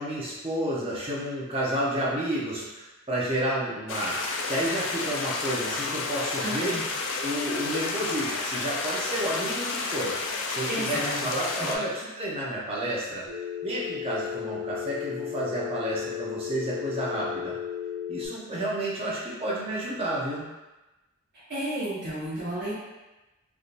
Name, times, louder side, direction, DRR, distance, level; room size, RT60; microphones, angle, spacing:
voice 1, 0.0-6.8 7.2-10.1 10.5-13.3 13.6-17.5 18.1-20.5, right 1 dB, 25° right, -6 dB, 0.7 m, -30 dB
sound 1, 3.9-11.8, left 3 dB, 55° left, 0.4 m, -31 dB
voice 2, 6.4-6.8 10.7-11.3 11.5-11.7 21.5-22.7, right 1 dB, 45° right, -13 dB, 1.1 m, -32 dB
Telephone, 13.3-18.3, left 9 dB, 70° right, 0.8 m, -34 dB
3.4 x 2.7 x 2.5 m, 1.1 s
head